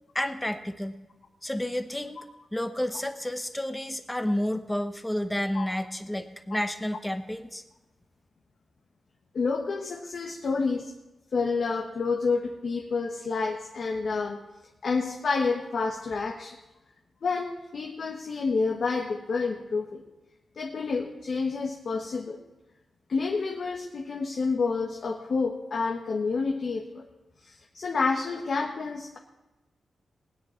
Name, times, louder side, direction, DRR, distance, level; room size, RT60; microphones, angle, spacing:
voice 1, 0.1-0.9 1.4-2.2 2.5-7.6, left 1 dB, 10° left, 7 dB, 1.1 m, -30 dB
voice 2, 9.3-10.9 11.3-14.4 14.8-16.6 17.2-20.0 20.6-22.4 23.1-27.0 27.4-29.2, left 4 dB, 65° left, 1 dB, 1.2 m, -29 dB
19.5 x 9.7 x 4.5 m, 1.1 s
wide cardioid pair, 100°, 0 cm